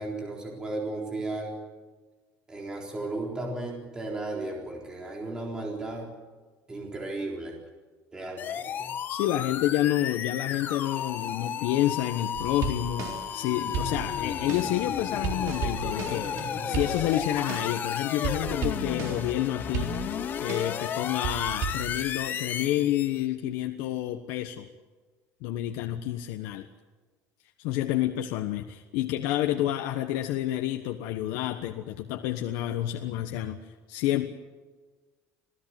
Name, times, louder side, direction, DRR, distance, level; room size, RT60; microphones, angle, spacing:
voice 1, 0.0-1.6 2.5-6.1 6.7-7.6 8.1-8.9, right 2 dB, 15° right, 0 dB, 4.0 m, -35 dB
sound 1, 8.4-23.2, left 8 dB, 35° left, 1.3 m, -33 dB
voice 2, 9.1-19.9 20.4-24.7 25.4-26.7 27.6-33.6 33.9-34.3, left 13 dB, 85° left, 5 dB, 1.3 m, -29 dB
sound 2, 12.3-13.4 13.7-17.9 18.2-19.4 19.7-20.9 21.2-21.8, right 6 dB, 55° right, 3.8 m, -35 dB
27.0 x 16.5 x 7.7 m, 1.3 s
cardioid pair, 170°, 6 cm